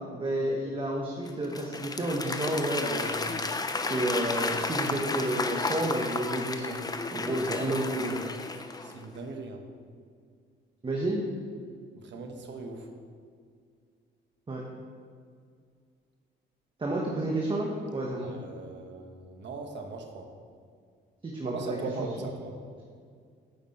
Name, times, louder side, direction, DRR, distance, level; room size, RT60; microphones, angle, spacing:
voice 1, 0.1-3.4 3.7-6.8 7.1-8.2 10.8-11.2 14.5-14.6 16.8-18.3 21.2-21.8 22.2-22.3, right 1 dB, 25° right, -2 dB, 1.3 m, -30 dB
Applause / Crowd, 1.3-9.0, left 3 dB, 20° left, 0.6 m, -33 dB
voice 2, 8.8-9.6 12.0-12.9 18.2-20.3 21.4-22.5, right 3 dB, 65° right, 4 dB, 1.3 m, -39 dB
9.7 x 5.9 x 4.3 m, 2.1 s
cardioid pair, 90°, 20 cm